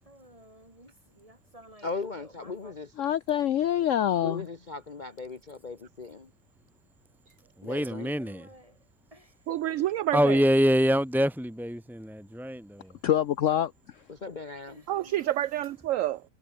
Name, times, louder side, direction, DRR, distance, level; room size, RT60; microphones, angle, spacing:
voice 1, 0.1-1.9 2.2-2.7 7.8-8.8 9.1-9.6 14.7-15.3, right 1 dB, 20° right, 7.3 m, -53 dB
voice 2, 1.8-2.9 4.2-6.3 7.6-8.1 14.1-14.8, left 4 dB, 30° left, 1.2 m, -38 dB
voice 3, 3.0-4.5 13.0-13.7, left 11 dB, 60° left, 0.9 m, -25 dB
voice 4, 7.6-8.5 10.1-12.9, equal, ahead, 0.6 m, -25 dB
voice 5, 9.5-10.4 14.9-16.2, right 13 dB, 70° right, 0.8 m, -28 dB
omnidirectional pair, 1.7 m